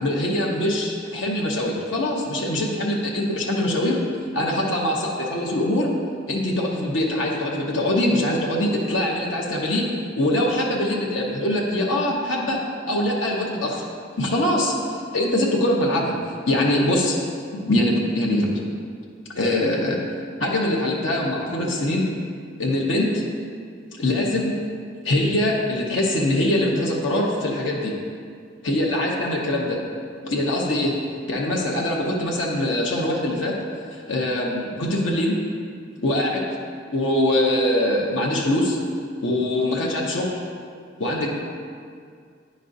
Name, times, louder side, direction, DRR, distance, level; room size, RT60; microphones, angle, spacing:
voice 1, 0.0-4.0 4.3-5.9 6.3-9.9 10.2-12.6 12.9-13.8 14.2-14.7 15.1-16.1 16.5-17.1 17.5-18.5 19.3-20.0 20.4-22.1 22.6-23.2 24.0-24.6 25.0-27.9 28.6-29.8 30.2-30.9 31.3-33.5 33.9-35.4 36.0-36.4 36.9-38.8 39.2-40.4 41.0-41.3, left 1 dB, 85° left, -3 dB, 0.8 m, -23 dB
10.0 x 5.2 x 2.6 m, 2.2 s
head